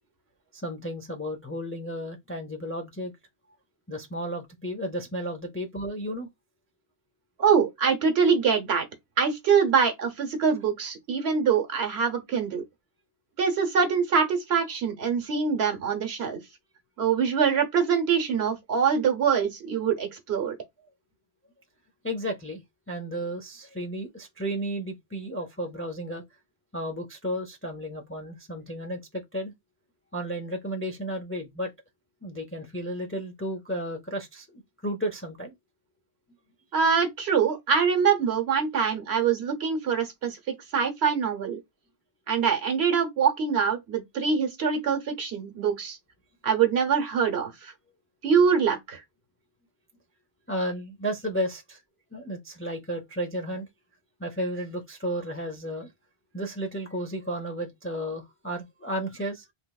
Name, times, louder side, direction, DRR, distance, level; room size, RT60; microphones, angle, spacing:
voice 1, 0.5-3.1 3.9-6.3 22.0-22.6 22.9-26.2 26.7-29.5 30.1-31.7 32.2-35.5 50.5-51.8 52.1-53.7 54.2-55.9 56.3-59.5, equal, 20° left, 0.3 m, -33 dB
voice 2, 7.4-8.9 9.2-12.6 13.4-16.4 17.0-20.5 36.7-40.4 40.7-41.6 42.3-46.0 46.4-47.7 48.2-49.0, right 6 dB, 75° right, 1.2 m, -24 dB
3.4 x 2.9 x 2.3 m
omnidirectional pair, 1.1 m